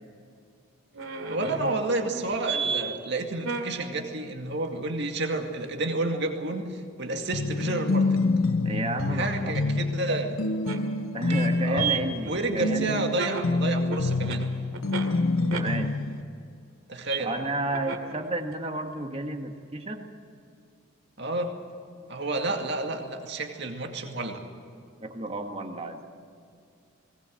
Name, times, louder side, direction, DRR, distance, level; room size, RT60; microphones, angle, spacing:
sound 1, 0.9-2.8 3.4-3.7 7.5-7.6 9.2-9.3 10.6-10.8 11.3-11.5 11.8-15.1 15.5-15.6 17.1-17.2 17.7-18.1 18.5-18.6, right 6 dB, 80° right, 2.4 m, -32 dB
voice 1, 1.3-8.2 9.1-10.4 11.6-11.9 12.3-14.5 16.9-17.3 21.2-21.6 22.1-24.4, right 2 dB, 55° right, 3 dB, 2.2 m, -30 dB
sound 2, 7.3-16.2, left 2 dB, 75° left, 0.9 m, -27 dB
voice 2, 8.6-9.5 11.1-13.1 15.5-15.9 17.2-20.1 22.5-22.6 25.0-26.0, right 2 dB, 25° right, 5 dB, 1.6 m, -32 dB
20.0 x 19.5 x 7.7 m, 2.4 s
head